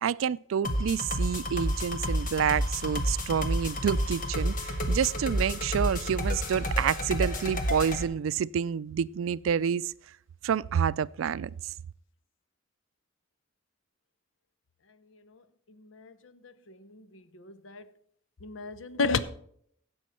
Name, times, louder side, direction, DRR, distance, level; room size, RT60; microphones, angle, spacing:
voice 1, 0.0-9.9 10.4-11.7, right 8 dB, 90° right, 0.4 m, -28 dB
sound 1, 0.6-8.0, equal, 45° left, 1.3 m, -30 dB
voice 2, 15.8-16.1 16.4-17.8 18.4-19.2, left 4 dB, 75° left, 0.7 m, -33 dB
16.0 x 6.2 x 4.3 m
head